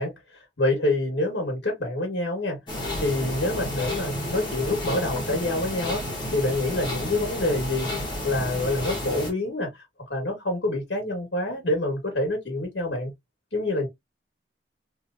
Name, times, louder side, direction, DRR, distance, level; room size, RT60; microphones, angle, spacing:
voice 1, 0.0-2.6 3.0-6.0 6.3-7.9 8.2-9.7 10.1-13.1 13.5-13.9, left 2 dB, 75° left, 1.4 m, -26 dB
sound 1, 2.7-9.3, left 1 dB, 25° left, 1.3 m, -31 dB
2.9 x 2.9 x 2.5 m
head